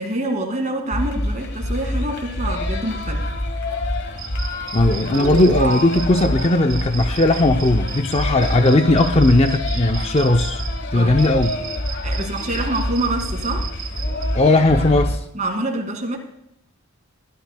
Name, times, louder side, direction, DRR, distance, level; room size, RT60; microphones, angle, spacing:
voice 1, 0.0-3.2 10.9-11.2 11.9-13.7 15.3-16.2, right 1 dB, 35° right, 4 dB, 2.0 m, -26 dB
sound 1, 0.9-15.2, left 1 dB, 50° left, 1.2 m, -26 dB
sound 2, 4.2-10.7 11.2-14.3, right 9 dB, 70° right, 2.7 m, -34 dB
voice 2, 4.7-10.6 10.9-11.6 14.3-15.2, left 2 dB, 30° left, 6 dB, 0.5 m, -17 dB
sound 3, 5.0-8.3, right 3 dB, 85° right, 2.5 m, -31 dB
22.5 x 13.0 x 2.2 m, 0.82 s
head